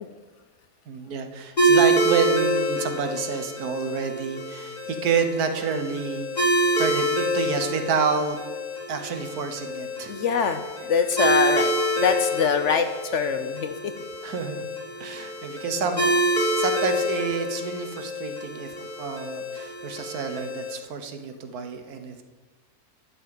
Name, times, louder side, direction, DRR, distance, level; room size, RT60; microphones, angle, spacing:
voice 1, 0.9-6.5 6.8-8.4 8.9-10.1 14.2-14.7 15.0-16.2 16.5-22.2, right 6 dB, 75° right, 7 dB, 1.5 m, -29 dB
sound 1, 1.6-20.7, right 1 dB, 25° left, 1.9 m, -26 dB
voice 2, 10.1-10.6 10.9-13.9, left 6 dB, 60° left, 9 dB, 0.8 m, -24 dB
11.0 x 5.5 x 7.7 m, 1.2 s
omnidirectional pair, 1.6 m